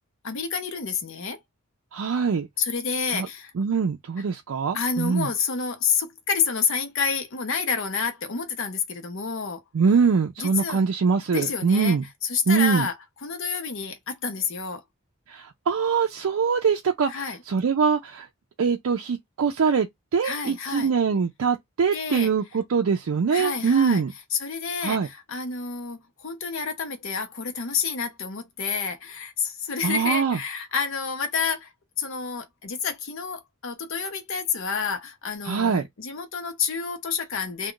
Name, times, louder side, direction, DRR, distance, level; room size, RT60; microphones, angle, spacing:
voice 1, 0.2-1.4 2.6-3.5 4.7-9.6 10.4-10.8 11.3-12.0 12.2-12.9 13.2-14.8 17.1-17.4 20.2-20.9 21.9-22.3 23.3-24.0 24.3-37.7, left 5 dB, 65° left, 0.7 m, -29 dB
voice 2, 1.9-2.5 3.1-3.3 3.6-5.3 9.7-12.0 12.5-12.9 15.3-18.3 18.6-24.1 24.8-25.1 29.8-30.4 35.4-35.8, right 5 dB, 75° right, 0.4 m, -23 dB
2.4 x 2.2 x 3.7 m
head